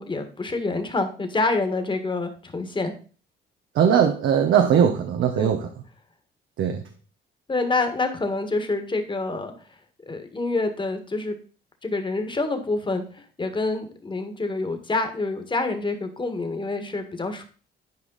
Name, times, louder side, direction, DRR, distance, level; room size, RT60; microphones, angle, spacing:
voice 1, 0.0-2.9 5.4-5.5 7.5-9.5 10.1-11.4 11.8-17.4, left 3 dB, 25° left, 7 dB, 1.8 m, -27 dB
voice 2, 3.7-5.7 6.6-6.8, right 8 dB, 80° right, 5 dB, 1.0 m, -20 dB
11.0 x 5.0 x 4.0 m, 0.38 s
cardioid pair, 90°, 20 cm